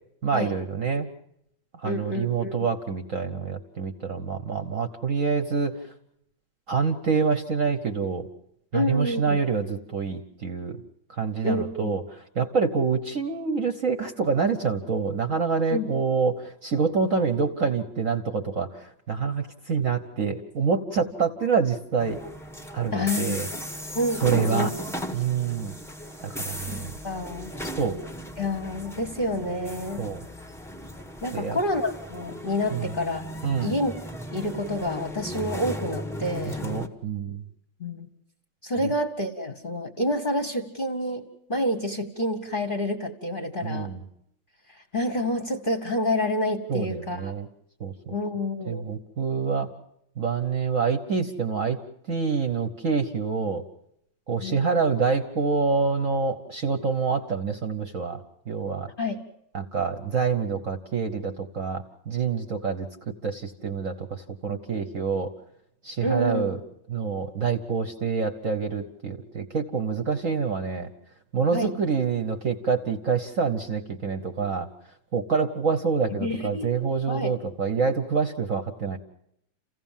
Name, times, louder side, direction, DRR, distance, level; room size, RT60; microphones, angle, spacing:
voice 1, 0.2-1.1 1.8-5.8 6.7-8.3 8.7-10.8 11.1-22.2 22.7-23.5 24.2-24.7 25.1-25.7 26.2-26.9 27.8-28.0 30.0-30.2 31.3-31.6 32.7-32.9 33.4-33.8 36.4-37.4 43.6-44.0 46.7-47.5 47.8-48.1 48.7-49.7 50.2-51.8 52.1-53.6 54.3-58.2 58.5-58.9 59.5-65.3 65.8-66.6 66.9-70.9 71.3-74.7 75.1-79.0, right 5 dB, 45° right, 6 dB, 1.2 m, -26 dB
voice 2, 1.8-2.7 8.7-9.4 11.4-11.9 15.7-15.9 22.9-23.4 23.9-24.7 26.7-27.5 28.4-30.1 31.2-33.2 33.6-33.9 34.3-36.7 37.8-38.1 38.6-43.9 44.7-47.3 48.1-48.9 54.4-54.7 59.0-59.2 66.0-66.5 71.5-71.7 76.2-76.7 77.1-77.3, left 1 dB, 30° left, 6 dB, 1.2 m, -28 dB
sound 1, 22.0-36.9, equal, ahead, 0.7 m, -37 dB
28.0 x 16.0 x 7.3 m, 0.75 s
omnidirectional pair, 2.2 m